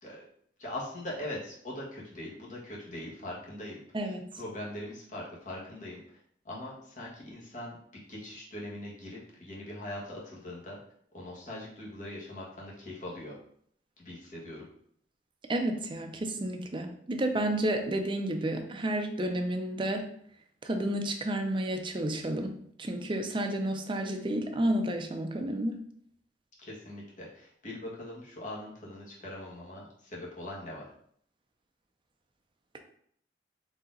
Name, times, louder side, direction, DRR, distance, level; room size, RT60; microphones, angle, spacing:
voice 1, 0.6-6.0 6.4-7.8 8.1-10.8 11.1-13.4 14.0-14.7 26.6-30.9, left 1 dB, 45° left, -4 dB, 1.3 m, -41 dB
voice 2, 15.5-20.1 20.6-22.5 22.8-25.8, right 1 dB, 30° right, 4 dB, 0.5 m, -31 dB
4.1 x 2.8 x 3.8 m, 0.65 s
head